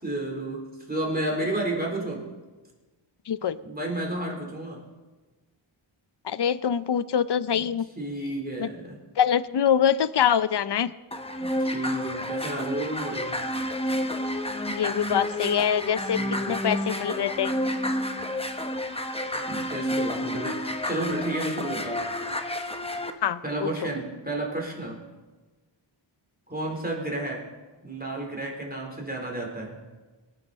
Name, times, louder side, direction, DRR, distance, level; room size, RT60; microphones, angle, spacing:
voice 1, 0.0-2.3 3.6-4.8 7.5-7.7 8.0-9.0 11.4-13.4 16.1-16.6 19.5-22.0 23.4-25.0 26.5-27.5 27.8-29.8, right 1 dB, 20° right, -1 dB, 3.8 m, -32 dB
voice 2, 3.3-3.6 6.2-7.9 8.6-8.7 9.2-10.9 14.7-16.2 16.5-17.5 23.2-23.7, left 8 dB, 55° left, 16 dB, 0.6 m, -24 dB
sound 1, 11.1-23.1, left 1 dB, 10° left, 0.9 m, -30 dB
23.5 x 9.9 x 4.2 m, 1.3 s
wide cardioid pair, 75°, 50 cm